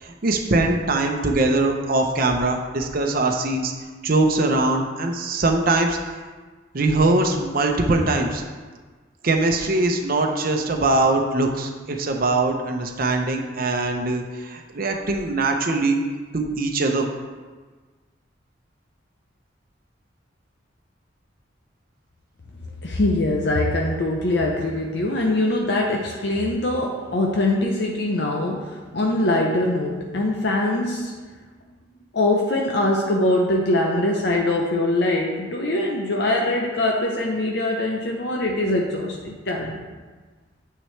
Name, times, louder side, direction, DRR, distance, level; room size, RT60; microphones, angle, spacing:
voice 1, 0.0-3.7 4.0-6.0 6.7-8.4 9.2-16.0 16.3-17.1, right 2 dB, 50° right, 3 dB, 0.8 m, -22 dB
voice 2, 22.8-31.1 32.1-39.8, left 1 dB, 65° left, 0 dB, 0.8 m, -23 dB
9.1 x 6.8 x 3.3 m, 1.4 s
head